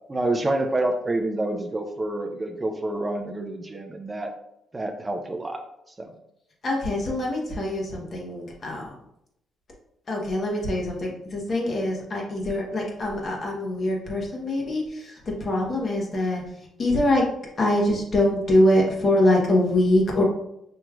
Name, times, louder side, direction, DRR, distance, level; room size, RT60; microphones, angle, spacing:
voice 1, 0.1-4.3 4.7-5.6 6.0-6.1, right 2 dB, 20° right, 4 dB, 0.4 m, -27 dB
voice 2, 6.6-8.9 10.1-16.4 16.8-17.2 17.6-20.2, left 1 dB, 45° left, -1 dB, 1.0 m, -23 dB
4.9 x 3.0 x 2.4 m, 0.80 s
cardioid pair, 90°, 0 cm